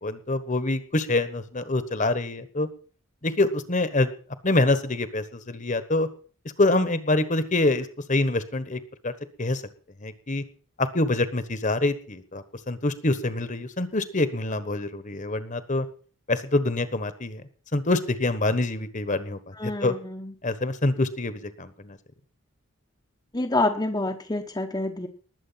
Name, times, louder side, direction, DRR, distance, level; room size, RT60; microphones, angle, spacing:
voice 1, 0.0-2.7 3.2-4.1 4.4-6.1 6.6-9.1 9.4-9.6 10.0-10.4 10.8-15.9 16.3-17.4 17.7-19.9 20.4-22.0, left 2 dB, 35° left, 12 dB, 1.3 m, -25 dB
voice 2, 19.6-20.3 23.3-25.1, left 2 dB, 20° left, 1 dB, 1.0 m, -27 dB
20.0 x 8.0 x 5.8 m, 0.42 s
head